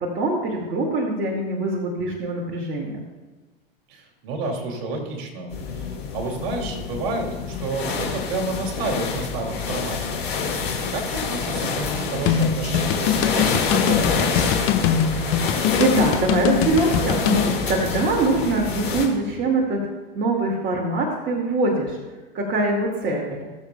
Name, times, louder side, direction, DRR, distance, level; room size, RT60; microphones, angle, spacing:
voice 1, 0.0-3.0 15.1-19.8 20.1-22.0 22.3-23.5, right 2 dB, 40° right, -1 dB, 2.1 m, -23 dB
voice 2, 3.9-10.2 10.9-14.4, right 2 dB, 55° right, 1 dB, 2.6 m, -30 dB
sound 1, 5.5-19.0, left 5 dB, 85° left, 3.4 m, -27 dB
sound 2, 12.3-17.4, left 9 dB, 45° left, 1.2 m, -22 dB
20.0 x 7.1 x 2.2 m, 1.2 s
hypercardioid pair, 90°, 30 cm